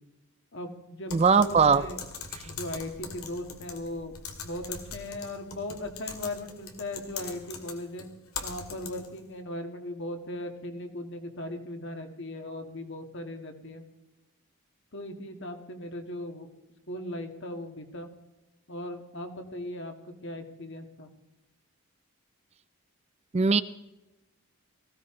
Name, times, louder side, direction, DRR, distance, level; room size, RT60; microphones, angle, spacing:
voice 1, 0.5-2.0 2.4-4.2 4.4-8.1 8.4-13.8 14.9-16.5 16.9-18.1 18.7-19.9 20.2-21.1, left 1 dB, 55° left, 5 dB, 1.8 m, -38 dB
Typing, 1.1-9.2, left 5 dB, 85° left, 2.2 m, -41 dB
voice 2, 1.1-1.8 23.3-23.6, right 5 dB, 30° right, 14 dB, 0.4 m, -20 dB
19.0 x 16.0 x 3.8 m, 0.99 s
head